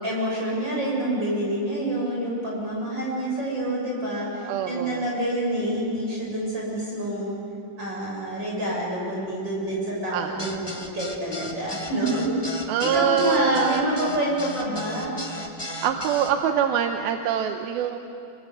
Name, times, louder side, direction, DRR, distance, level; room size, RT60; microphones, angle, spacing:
voice 1, 0.0-7.4 7.8-12.3 12.9-15.2, right 1 dB, 30° right, -4 dB, 7.5 m, -27 dB
voice 2, 4.5-5.0 10.1-10.5 12.7-14.2 15.8-18.0, right 8 dB, 90° right, 5 dB, 2.8 m, -25 dB
sound 1, 10.4-16.3, left 1 dB, 20° left, 0.7 m, -35 dB
28.0 x 25.0 x 8.2 m, 2.7 s
omnidirectional pair, 4.2 m